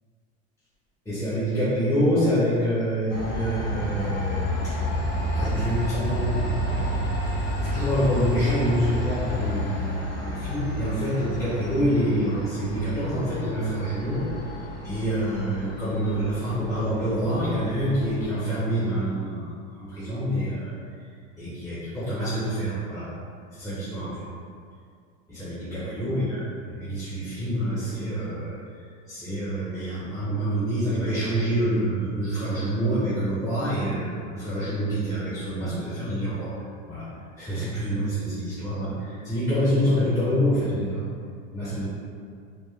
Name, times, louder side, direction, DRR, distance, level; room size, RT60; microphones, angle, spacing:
voice 1, 1.1-4.8 5.3-7.0 7.6-14.2 14.8-20.7 21.4-23.1 23.5-24.2 25.3-28.6 29.1-36.5 36.9-37.0 37.4-41.0 41.5-41.9, equal, 10° left, -12 dB, 1.0 m, -26 dB
Train, 3.1-18.2, equal, 70° left, 1.5 m, -30 dB
4.4 x 2.5 x 3.2 m, 2.2 s
supercardioid pair, 120°, 37 cm